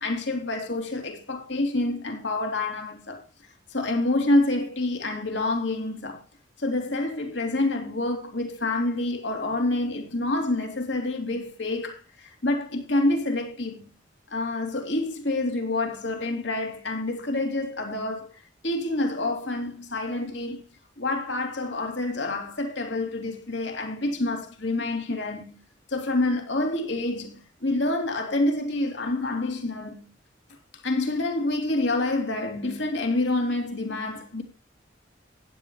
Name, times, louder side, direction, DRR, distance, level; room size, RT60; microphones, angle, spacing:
voice 1, 0.0-3.2 3.7-6.2 6.6-13.9 14.3-18.3 18.6-20.6 21.0-25.6 25.9-30.1 30.8-34.4, left 2 dB, 70° left, 3.0 m, -27 dB
15.5 x 10.5 x 3.2 m
head